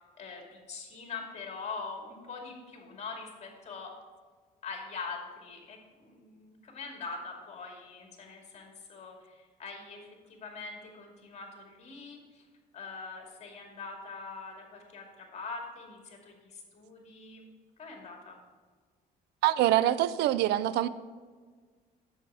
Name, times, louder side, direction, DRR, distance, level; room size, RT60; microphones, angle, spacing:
voice 1, 0.2-3.9 4.6-12.4 12.7-17.5 17.8-18.4, left 4 dB, 40° left, 1 dB, 2.4 m, -43 dB
voice 2, 19.4-20.9, right 13 dB, 80° right, 16 dB, 0.4 m, -25 dB
8.2 x 7.1 x 4.9 m, 1.5 s
cardioid pair, 110°, 17 cm